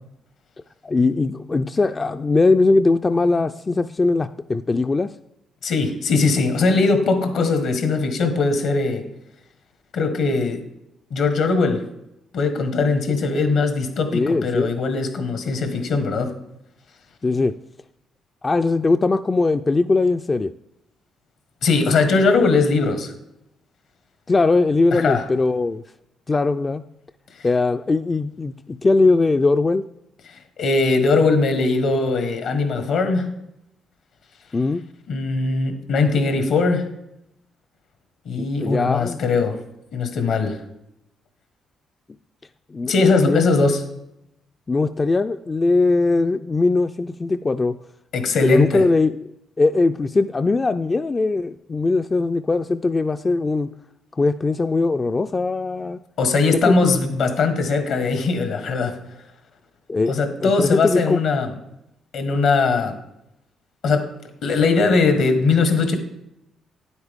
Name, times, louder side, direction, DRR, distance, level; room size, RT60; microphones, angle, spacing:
voice 1, 0.8-5.1 14.1-14.8 17.2-17.6 18.4-20.5 24.3-25.8 26.3-26.8 27.4-29.9 34.5-34.8 38.4-39.2 42.7-42.9 43.2-43.4 44.7-47.8 48.4-53.7 54.2-56.0 56.5-57.0 59.9-61.2, left 3 dB, 30° left, 9 dB, 0.3 m, -20 dB
voice 2, 5.6-9.0 9.9-10.6 11.1-11.8 12.3-16.3 21.6-23.1 24.9-25.2 30.3-33.3 35.1-36.9 38.2-39.6 39.9-40.6 42.9-43.8 48.1-48.8 56.2-58.9 60.1-61.5 62.1-63.0 63.8-64.1 64.4-66.0, left 4 dB, 75° left, 7 dB, 1.4 m, -20 dB
9.6 x 8.1 x 3.6 m, 0.84 s
cardioid pair, 75°, 0 cm